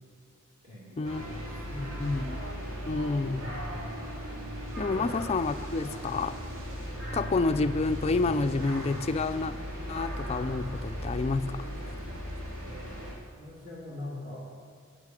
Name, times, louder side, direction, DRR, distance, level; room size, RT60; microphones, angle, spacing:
voice 1, 0.6-2.0 3.3-4.0 4.9-5.1 13.4-14.5, left 1 dB, 30° right, -9 dB, 2.5 m, -42 dB
sound 1, 1.0-13.1, equal, 85° right, 2.8 m, -37 dB
voice 2, 1.9-2.4 2.9-3.5 4.8-6.4 7.1-9.5 9.9-11.7, left 3 dB, 30° left, 11 dB, 0.4 m, -29 dB
11.0 x 6.7 x 9.0 m, 2.1 s
head